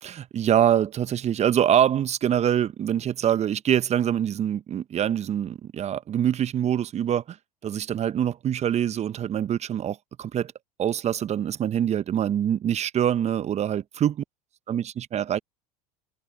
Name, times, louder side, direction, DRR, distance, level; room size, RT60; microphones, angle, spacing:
voice 1, 0.0-7.4 7.6-10.5 10.8-14.2 14.7-15.4, right 10 dB, 35° right, 1.0 m, -24 dB
hypercardioid pair, 75°, 20 cm